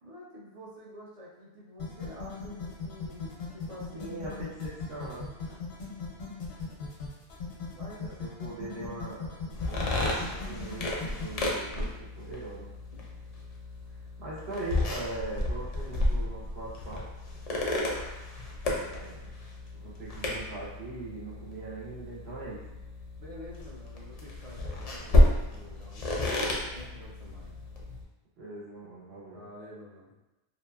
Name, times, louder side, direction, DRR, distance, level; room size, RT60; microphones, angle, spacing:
voice 1, 0.0-4.2 7.7-8.2 23.2-25.2 25.4-27.5 29.3-30.2, equal, 50° right, -5 dB, 0.5 m, -48 dB
sound 1, 1.8-11.4, left 5 dB, 85° left, 0.9 m, -38 dB
voice 2, 3.9-5.3 8.0-12.7 14.2-17.0 18.7-19.4 19.7-22.8 28.4-29.4, right 2 dB, 80° right, -6 dB, 1.1 m, -41 dB
sound 2, 9.5-28.0, left 1 dB, 55° left, 0.5 m, -31 dB
2.7 x 2.4 x 2.2 m, 1.0 s
omnidirectional pair, 1.0 m